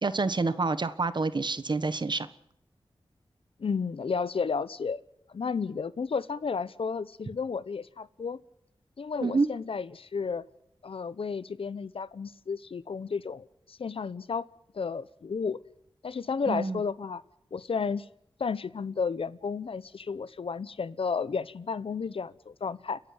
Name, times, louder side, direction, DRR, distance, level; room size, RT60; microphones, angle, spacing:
voice 1, 0.0-2.3 9.2-9.5 16.5-16.8, right 3 dB, 50° right, 14 dB, 1.3 m, -27 dB
voice 2, 3.6-5.0 5.3-8.4 9.0-10.4 10.8-14.5 14.7-15.6 16.0-17.2 17.5-18.1 18.4-23.0, left 5 dB, 75° left, 17 dB, 0.9 m, -32 dB
30.0 x 11.0 x 9.6 m, 0.77 s
wide cardioid pair, 65°, 10 cm